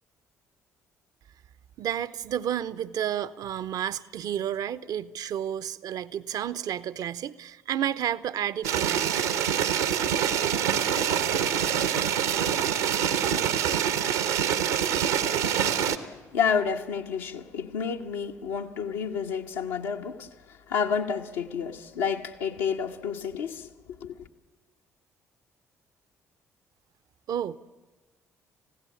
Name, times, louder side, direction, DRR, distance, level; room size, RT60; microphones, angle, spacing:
voice 1, 1.8-9.2 27.3-27.6, right 10 dB, 50° right, 0.8 m, -31 dB
sound 1, 8.6-16.0, right 9 dB, 70° right, 1.1 m, -25 dB
voice 2, 16.0-23.7 24.0-24.3, left 6 dB, 70° left, 1.2 m, -30 dB
29.5 x 16.0 x 7.2 m
figure-of-eight pair, 45°, 8 cm